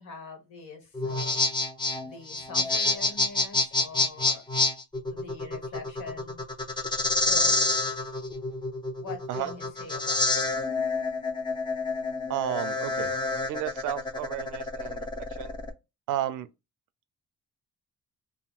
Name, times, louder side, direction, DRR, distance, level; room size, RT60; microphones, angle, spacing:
voice 1, 0.0-1.5 2.0-4.4 5.1-6.4 7.3-7.6 9.0-10.4, left 5 dB, 80° left, 1.3 m, -43 dB
sound 1, 0.9-15.7, left 2 dB, 15° left, 0.5 m, -28 dB
voice 2, 12.3-13.1 13.5-15.5 16.1-16.5, right 12 dB, 85° right, 0.5 m, -32 dB
3.6 x 2.0 x 2.4 m
cardioid pair, 90°, 30 cm